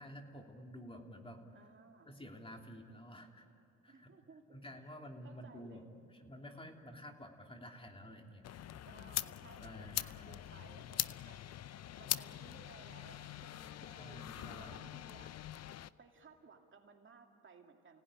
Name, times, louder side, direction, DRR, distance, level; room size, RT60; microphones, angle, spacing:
voice 1, 0.0-1.7 2.1-3.5 3.8-4.1 4.5-5.8 6.1-8.5 9.6-10.4 14.0-14.8, equal, 20° left, 2 dB, 3.0 m, -51 dB
voice 2, 1.5-2.1 3.9-4.5 4.8-4.9 5.2-5.9 8.9-15.3 16.0-18.0, right 5 dB, 40° right, 2 dB, 2.5 m, -60 dB
sound 1, 8.4-15.9, left 12 dB, 55° left, 0.6 m, -43 dB
30.0 x 17.5 x 10.0 m, 2.7 s
cardioid pair, 90°, 30 cm